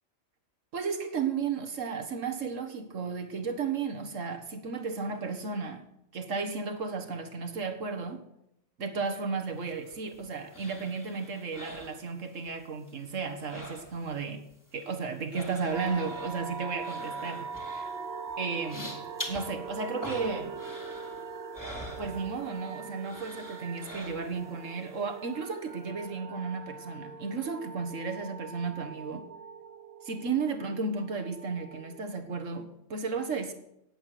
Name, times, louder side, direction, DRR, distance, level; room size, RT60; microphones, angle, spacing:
voice 1, 0.7-5.9 6.1-8.3 8.8-14.5 14.7-17.9 18.4-19.0 19.3-20.6 22.0-29.3 30.0-33.5, right 5 dB, 70° right, 1.8 m, -34 dB
sound 1, 9.6-12.6 12.9-14.3 14.5-22.7 23.0-24.6 25.0-25.1, equal, 15° left, 2.7 m, -45 dB
sound 2, 15.7-32.2, right 5 dB, 55° right, 1.2 m, -42 dB
18.5 x 8.3 x 6.7 m
omnidirectional pair, 1.4 m